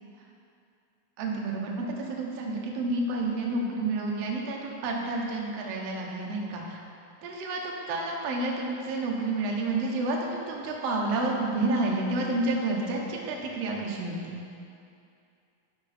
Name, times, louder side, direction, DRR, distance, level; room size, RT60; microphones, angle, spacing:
voice 1, 1.2-6.8 7.2-14.4, right 2 dB, 70° right, -1 dB, 1.5 m, -30 dB
11.0 x 5.9 x 4.2 m, 2.5 s
omnidirectional pair, 4.2 m